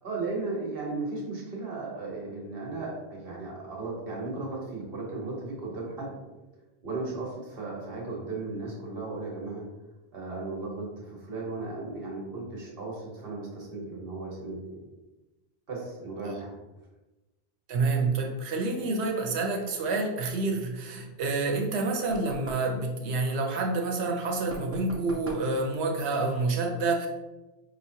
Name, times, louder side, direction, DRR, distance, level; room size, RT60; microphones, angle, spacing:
voice 1, 0.0-6.1 6.8-9.6 10.1-14.8 15.7-16.5, right 3 dB, 60° right, -3 dB, 1.3 m, -36 dB
voice 2, 17.7-27.1, right 3 dB, 80° right, 1 dB, 1.0 m, -28 dB
sound 1, 22.1-22.8 24.5-25.5, right 1 dB, 20° right, 0.5 m, -40 dB
5.1 x 3.1 x 2.7 m, 1.1 s
omnidirectional pair, 1.1 m